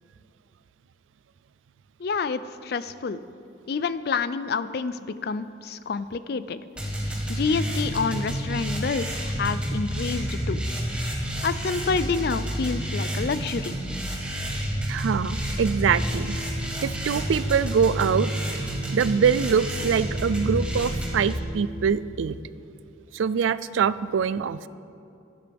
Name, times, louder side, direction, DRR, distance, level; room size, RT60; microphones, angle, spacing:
voice 1, 2.0-3.2 3.7-6.6 7.3-10.6 11.4-13.8, left 4 dB, 55° left, 14 dB, 0.4 m, -28 dB
sound 1, 6.8-21.3, equal, 5° right, 1.6 m, -29 dB
voice 2, 14.9-16.4 16.8-18.3 18.9-22.4 23.1-24.7, right 6 dB, 85° right, 16 dB, 0.4 m, -24 dB
sound 2, 15.9-21.9, right 6 dB, 50° right, 2.5 m, -44 dB
16.0 x 11.5 x 3.5 m, 2.6 s
head